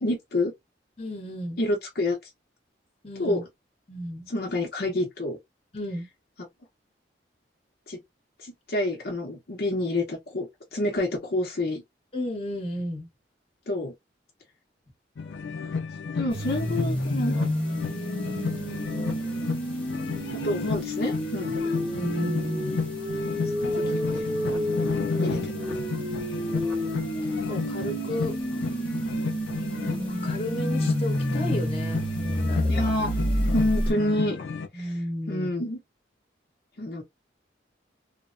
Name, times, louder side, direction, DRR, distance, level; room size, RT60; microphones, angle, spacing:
voice 1, 0.0-0.5 1.6-2.2 3.2-3.4 4.3-5.4 7.9-8.0 8.4-11.8 13.7-13.9 16.1-17.4 20.4-21.6 23.3-24.6 25.2-25.5 32.7-33.1 33.5-34.4 34.7-34.9 35.3-35.8 36.8-37.0, left 1 dB, 60° left, 0.7 m, -28 dB
voice 2, 1.0-1.6 3.0-3.4 3.9-4.3 5.7-6.1 12.1-13.1 17.8-19.1 21.6-22.7 25.0-25.5 27.5-28.3 30.0-32.9 34.7-35.5, left 1 dB, 30° left, 1.0 m, -33 dB
sound 1, 15.2-34.7, left 5 dB, 85° left, 0.4 m, -33 dB
sound 2, 16.3-33.9, equal, 5° left, 1.0 m, -29 dB
2.9 x 2.0 x 2.5 m
head